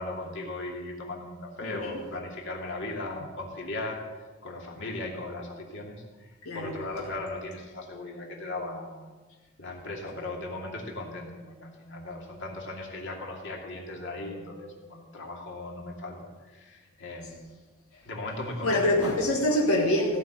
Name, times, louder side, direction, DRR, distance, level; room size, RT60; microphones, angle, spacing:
voice 1, 0.0-4.0 4.4-9.1 9.6-17.4 18.0-18.8, left 2 dB, 55° left, -1 dB, 2.7 m, -37 dB
voice 2, 1.6-2.0 6.4-6.8 17.9-18.0 18.6-20.2, left 1 dB, 90° left, -1 dB, 1.8 m, -25 dB
16.5 x 6.1 x 8.4 m, 1.3 s
head